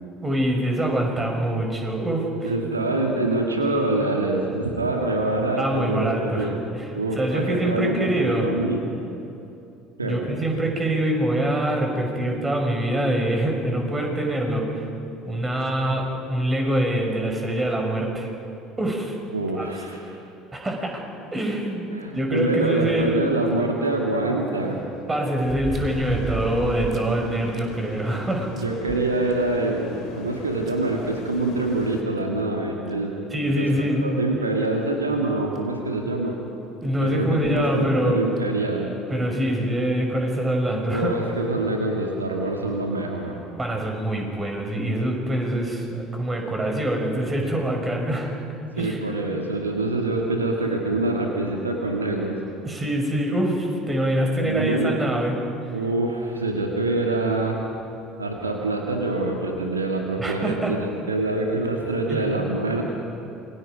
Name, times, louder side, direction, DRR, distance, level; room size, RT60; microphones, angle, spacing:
voice 1, 0.2-2.5 5.6-8.5 10.0-14.9 15.2-18.3 18.8-19.2 19.6-19.7 20.5-21.0 21.3-23.2 25.1-28.5 33.3-34.0 36.8-38.3 39.1-41.1 43.6-48.3 48.7-49.0 52.6-55.4 60.2-60.8 62.1-62.3, right 1 dB, 20° right, 1 dB, 5.8 m, -24 dB
voice 2, 2.4-6.6 6.9-8.9 10.0-10.2 19.3-20.0 21.9-24.8 28.5-33.2 33.6-36.4 37.0-38.9 40.9-43.4 48.8-52.4 54.4-55.0 55.7-57.6 58.2-62.9, right 2 dB, 90° right, 1 dB, 1.9 m, -25 dB
sound 1, 23.5-23.6 25.4-27.1 27.5-27.6 28.1-28.2 28.6-29.7 30.7-30.8 32.2-32.3 32.9-33.0 33.7-33.9 35.2-35.3 35.5-35.6 37.3-37.7 38.4-38.5, right 4 dB, 40° right, 3.1 m, -34 dB
sound 2, 25.8-32.0, left 5 dB, 55° left, 2.9 m, -40 dB
28.0 x 22.0 x 5.2 m, 2.8 s
figure-of-eight pair, 65°, 0 cm